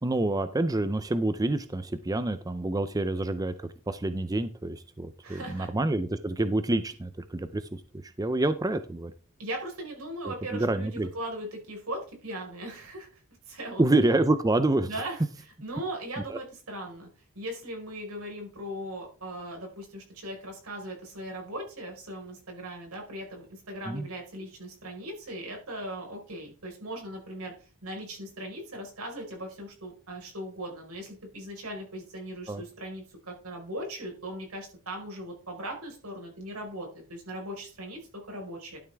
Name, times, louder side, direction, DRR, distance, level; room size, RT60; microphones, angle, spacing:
voice 1, 0.0-3.5 3.9-9.1 10.2-11.1 13.8-14.9 16.3-16.4 23.9-24.1 32.5-32.6, right 2 dB, 15° right, 11 dB, 0.5 m, -27 dB
voice 2, 5.2-5.7 9.4-13.2 13.5-13.9 14.8-15.2 15.6-17.1 17.3-27.5 27.8-38.0 38.3-38.8, right 1 dB, 90° right, 1 dB, 4.6 m, -39 dB
12.0 x 7.2 x 3.4 m, 0.39 s
head